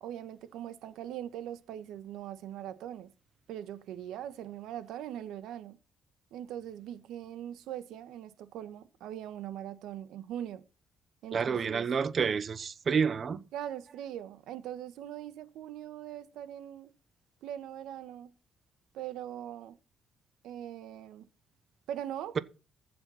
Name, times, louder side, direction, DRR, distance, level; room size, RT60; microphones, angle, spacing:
voice 1, 0.0-3.1 3.5-5.8 6.3-10.6 11.2-11.8 13.5-16.9 17.4-18.3 18.9-19.8 20.4-21.3 21.9-22.4, right 11 dB, 85° right, 1.4 m, -41 dB
voice 2, 11.3-13.4, right 6 dB, 35° right, 0.9 m, -29 dB
15.0 x 6.8 x 5.7 m
cardioid pair, 135°, 0 cm